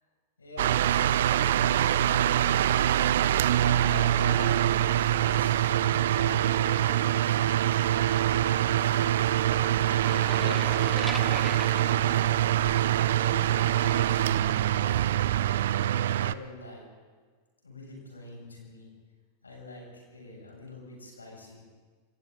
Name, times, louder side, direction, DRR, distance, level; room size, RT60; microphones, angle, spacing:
voice 1, 0.4-7.9 8.5-12.4 12.7-15.1 15.7-16.8 17.6-18.9 19.4-21.6, left 2 dB, 75° left, -1 dB, 6.8 m, -44 dB
sound 1, 0.6-16.3, right 12 dB, 60° right, 0.6 m, -24 dB
sound 2, 9.9-13.0, equal, ahead, 1.0 m, -39 dB
28.0 x 25.0 x 3.9 m, 1.5 s
figure-of-eight pair, 90°, 0 cm